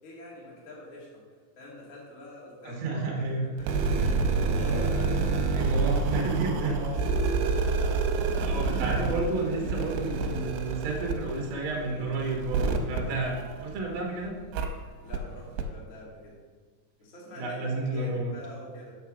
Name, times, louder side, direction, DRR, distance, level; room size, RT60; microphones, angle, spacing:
voice 1, 0.0-5.3 5.6-5.9 7.0-8.2 15.0-16.4 17.0-19.0, left 1 dB, 70° left, -5 dB, 0.7 m, -46 dB
voice 2, 2.6-3.4 4.7-4.8 5.5-7.0 8.4-14.4 17.3-18.3, right 2 dB, 65° right, -1 dB, 1.7 m, -31 dB
sound 1, 3.6-14.0 14.5-14.7 15.1-15.2 15.6-15.7, right 4 dB, 85° right, 3.0 m, -28 dB
8.4 x 4.6 x 6.1 m, 1.5 s
omnidirectional pair, 5.6 m